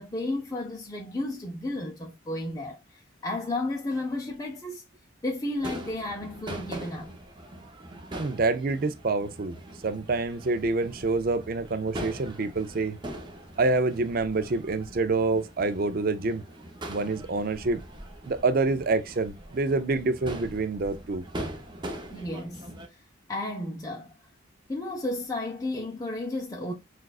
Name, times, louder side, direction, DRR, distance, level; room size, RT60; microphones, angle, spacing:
voice 1, 0.0-4.8 5.2-7.1 22.1-23.0 23.3-24.1 24.7-26.7, left 2 dB, 20° left, 0.5 m, -33 dB
Crowd / Fireworks, 5.6-22.9, right 1 dB, 25° right, 0.8 m, -41 dB
voice 2, 8.2-9.6 9.8-13.0 13.6-16.4 16.9-17.8 18.3-21.2, right 3 dB, 50° right, 0.5 m, -27 dB
6.3 x 2.4 x 2.4 m
head